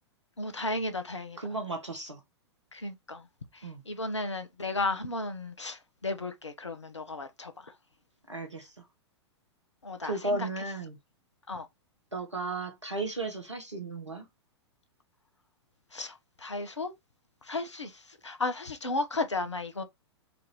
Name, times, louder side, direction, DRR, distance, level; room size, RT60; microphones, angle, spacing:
voice 1, 0.4-1.4 2.8-3.2 3.9-7.5 9.8-10.5 11.5-11.6 15.9-16.1 16.4-16.9 17.5-17.9 18.2-19.8, left 2 dB, 80° left, 0.9 m, -34 dB
voice 2, 1.4-2.2 3.6-3.8 8.3-8.8 10.0-11.0 12.1-14.3, right 2 dB, 85° right, 1.4 m, -35 dB
4.7 x 2.7 x 3.1 m
figure-of-eight pair, 105°, 15 cm